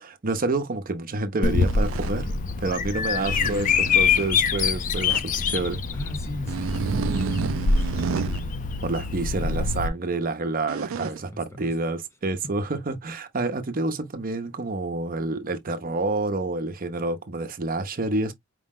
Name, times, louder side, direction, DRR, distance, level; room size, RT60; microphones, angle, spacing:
voice 1, 0.0-2.3 2.6-5.8 8.8-18.3, right 2 dB, 45° right, 0.7 m, -28 dB
Bird vocalization bird call bird song, 1.4-9.9, left 5 dB, 40° left, 0.4 m, -25 dB
sound 1, 1.6-2.2 3.2-4.4 5.1-5.2 6.5-8.4 10.7-11.2, right 6 dB, 70° right, 0.4 m, -31 dB
voice 2, 5.9-8.5 9.3-9.7 10.9-11.7, left 1 dB, 15° left, 0.7 m, -37 dB
5.0 x 2.1 x 3.6 m
head